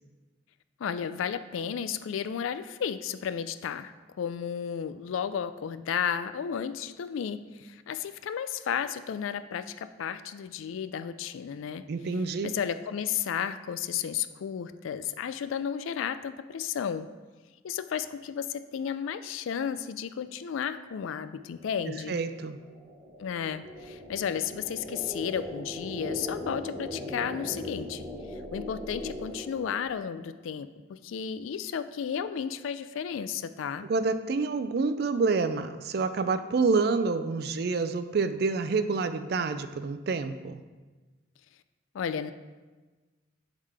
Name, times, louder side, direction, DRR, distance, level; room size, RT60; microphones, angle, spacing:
voice 1, 0.8-11.8 12.4-17.1 17.6-22.2 23.2-28.1 28.3-33.9 41.9-42.3, left 8 dB, 85° left, 11 dB, 0.3 m, -33 dB
voice 2, 11.9-12.5 22.1-22.5 33.8-40.6, right 4 dB, 55° right, 11 dB, 0.3 m, -28 dB
sound 1, 21.5-30.3, left 1 dB, 15° right, 1.0 m, -40 dB
11.0 x 3.7 x 3.3 m, 1.3 s
head